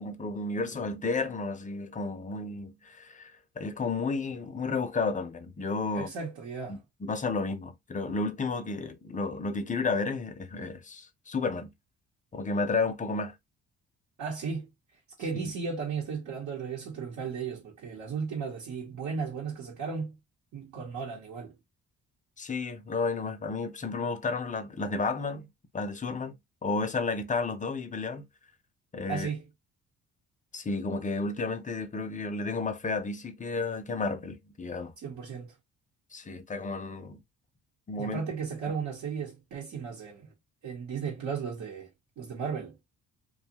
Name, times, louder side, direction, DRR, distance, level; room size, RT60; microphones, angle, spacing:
voice 1, 0.0-6.1 6.7-11.7 12.3-13.4 22.4-25.5 25.7-26.3 26.6-28.3 28.9-29.3 30.5-34.9 36.1-37.2 37.9-38.2, left 3 dB, 25° left, 0.6 m, -32 dB
voice 2, 5.9-6.8 14.2-14.7 15.2-20.2 20.5-21.5 29.1-29.5 35.0-35.5 38.0-40.3 40.6-41.9 42.2-42.8, right 5 dB, 70° right, 1.0 m, -35 dB
2.6 x 2.3 x 2.8 m
cardioid pair, 90°, 30 cm